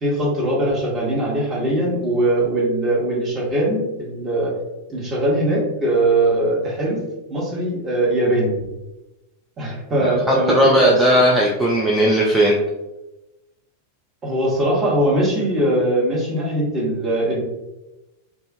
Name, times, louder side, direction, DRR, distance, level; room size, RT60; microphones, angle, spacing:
voice 1, 0.0-4.5 4.9-7.0 7.3-8.6 9.6-11.2 14.2-17.4, right 1 dB, 25° right, -5 dB, 1.0 m, -21 dB
voice 2, 10.5-12.6, equal, 5° right, -4 dB, 0.3 m, -16 dB
2.4 x 2.3 x 2.5 m, 0.99 s
figure-of-eight pair, 90°, 0 cm